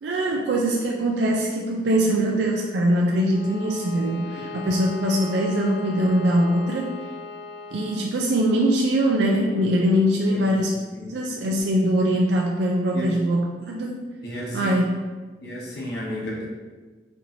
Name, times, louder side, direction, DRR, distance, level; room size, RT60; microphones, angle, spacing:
voice 1, 0.0-7.0 7.7-10.8 11.1-14.0 14.5-14.8, equal, 70° right, -1 dB, 0.4 m, -22 dB
Bowed string instrument, 3.2-8.1, left 3 dB, 90° left, 0.3 m, -38 dB
voice 2, 10.3-10.6 10.9-11.5 12.9-13.1 14.2-14.8 15.4-16.5, equal, 65° left, -4 dB, 1.0 m, -33 dB
4.4 x 2.8 x 2.6 m, 1.3 s
head